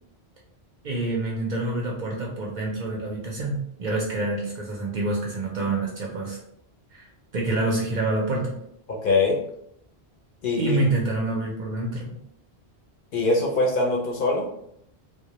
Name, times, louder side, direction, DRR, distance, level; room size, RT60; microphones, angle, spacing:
voice 1, 0.8-6.4 6.9-7.1 7.3-8.6 10.6-12.2, right 2 dB, 55° right, -2 dB, 0.6 m, -27 dB
voice 2, 8.9-9.4 10.4-10.8 13.1-14.4, left 3 dB, 60° left, -1 dB, 0.6 m, -22 dB
2.1 x 2.1 x 2.8 m, 0.74 s
omnidirectional pair, 1.1 m